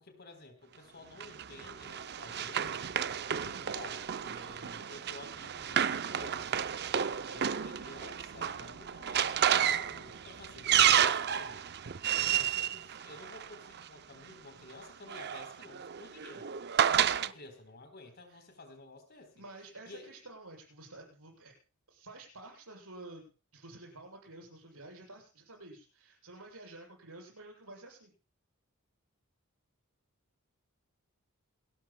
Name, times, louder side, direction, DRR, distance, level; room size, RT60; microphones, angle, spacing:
voice 1, 0.0-2.9 3.4-6.7 7.3-11.7 12.2-16.5 17.3-19.3 19.8-20.2, left 2 dB, 45° left, 7 dB, 3.8 m, -52 dB
Run, 1.2-13.8 14.8-17.3, right 9 dB, 45° right, 0.6 m, -31 dB
voice 2, 16.8-17.3 18.3-18.4 19.1-21.5 21.9-23.3 23.5-28.1, right 2 dB, 85° right, 0 dB, 7.8 m, -50 dB
28.0 x 13.5 x 2.3 m, 0.36 s
head